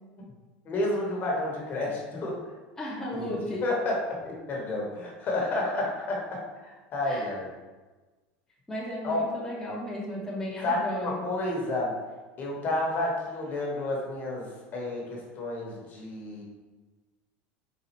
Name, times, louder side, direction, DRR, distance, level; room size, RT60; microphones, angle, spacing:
voice 1, 0.7-2.4 3.2-3.3 3.6-3.9 4.2-6.2 6.6-7.5 9.0-9.2 10.6-11.9 12.4-14.5 14.7-16.4, left 2 dB, 35° left, -2 dB, 0.9 m, -30 dB
voice 2, 2.8-3.6 7.0-7.3 8.7-11.2, left 1 dB, 10° left, -7 dB, 0.6 m, -34 dB
4.1 x 2.3 x 2.9 m, 1.2 s
supercardioid pair, 130°, 5 cm